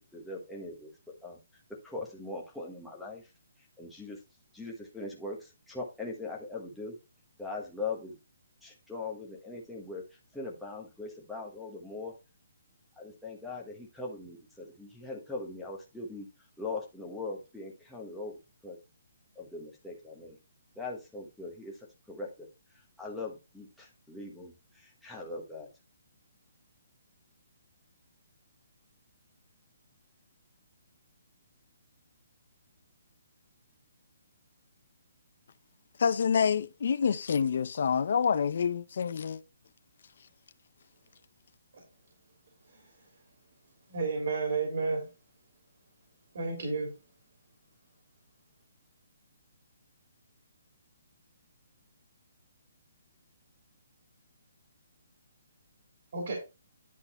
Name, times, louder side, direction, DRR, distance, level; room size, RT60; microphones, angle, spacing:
voice 1, 0.0-1.4 1.8-3.2 3.8-4.2 4.5-7.0 7.4-8.2 8.6-10.0 10.3-12.1 13.0-16.3 16.6-18.8 19.3-20.4 20.7-21.7 22.1-22.5 23.0-25.7, left 3 dB, ahead, 1.3 m, -40 dB
voice 2, 36.0-39.4, left 6 dB, 50° left, 0.7 m, -27 dB
voice 3, 43.9-45.1 46.3-46.9 56.1-56.3, right 4 dB, 50° right, 3.0 m, -31 dB
10.0 x 3.9 x 4.3 m
hypercardioid pair, 175°, 0 cm